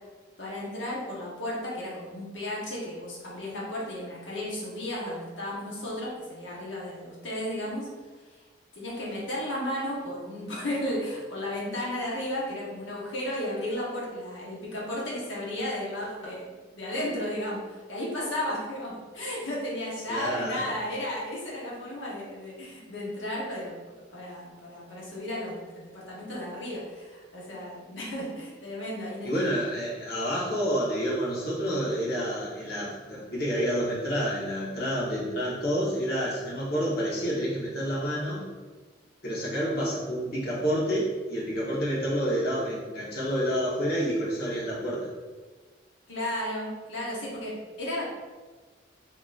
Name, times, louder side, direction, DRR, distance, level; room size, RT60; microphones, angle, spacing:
voice 1, 0.4-7.9 8.7-23.7 24.1-29.5 46.1-48.1, left 1 dB, 85° left, -5 dB, 1.0 m, -34 dB
voice 2, 20.1-20.6 29.2-38.4 39.2-45.1, equal, 55° left, -6 dB, 1.1 m, -29 dB
3.8 x 2.9 x 2.4 m, 1.3 s
head